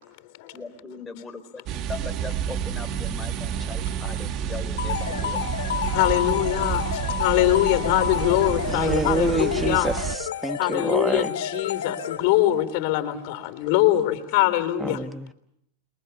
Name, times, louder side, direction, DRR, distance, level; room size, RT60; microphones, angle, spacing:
voice 1, 0.5-5.5 14.4-14.5, left 4 dB, 10° left, 5 dB, 3.6 m, -39 dB
sound 1, 1.7-10.2, right 9 dB, 40° right, 1.5 m, -29 dB
sound 2, 4.8-12.5, left 8 dB, 90° left, 2.3 m, -30 dB
voice 2, 5.9-9.9 10.6-15.0, left 15 dB, 55° left, 11 dB, 3.4 m, -23 dB
voice 3, 8.7-11.3 14.8-15.3, right 3 dB, 10° right, 11 dB, 1.3 m, -27 dB
28.5 x 23.0 x 7.0 m, 0.75 s
hypercardioid pair, 125°, 0 cm